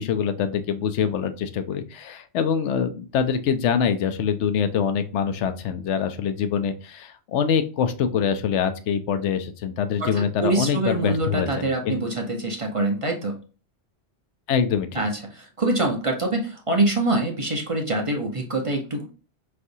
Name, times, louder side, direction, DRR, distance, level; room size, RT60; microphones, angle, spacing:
voice 1, 0.0-12.0 14.5-15.0, left 7 dB, 80° left, 9 dB, 0.9 m, -24 dB
voice 2, 10.0-13.4 14.9-19.1, right 2 dB, 30° right, 1 dB, 0.8 m, -25 dB
4.9 x 3.3 x 2.7 m, 0.35 s
omnidirectional pair, 1.2 m